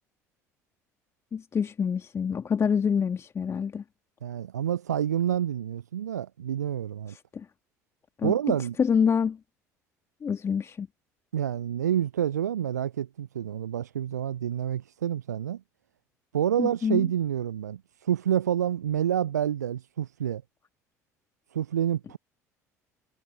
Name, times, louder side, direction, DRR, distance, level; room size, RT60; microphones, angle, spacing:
voice 1, 1.3-3.8 7.1-7.5 8.2-8.3 8.8-9.4 10.2-10.9 16.6-17.0, left 6 dB, 30° left, 2.2 m, -26 dB
voice 2, 4.2-7.2 8.2-8.8 11.3-15.6 16.3-20.4 21.5-22.2, right 10 dB, 80° right, 0.5 m, -28 dB
figure-of-eight pair, 60°, 9 cm